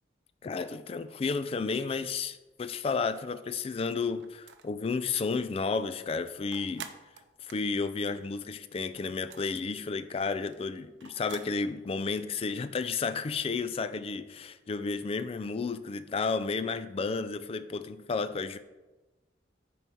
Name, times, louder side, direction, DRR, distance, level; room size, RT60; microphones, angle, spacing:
voice 1, 0.4-6.9 7.4-18.6, left 4 dB, 35° left, 0.3 m, -32 dB
sound 1, 4.2-4.8 5.2-5.3 5.6-8.6 8.9-11.6, right 7 dB, 80° right, 0.5 m, -48 dB
8.9 x 3.1 x 5.3 m
head